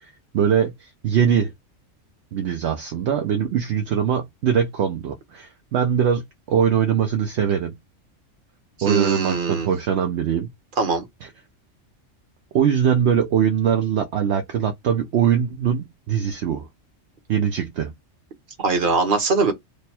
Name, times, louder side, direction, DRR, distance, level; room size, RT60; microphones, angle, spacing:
voice 1, 0.0-1.5 2.3-7.7 8.8-10.5 12.5-16.7 17.3-17.9, right 8 dB, 65° right, 0.8 m, -22 dB
voice 2, 8.8-9.7 10.8-11.1 18.6-19.5, right 4 dB, 45° right, 1.1 m, -21 dB
3.3 x 2.2 x 4.1 m
omnidirectional pair, 1.3 m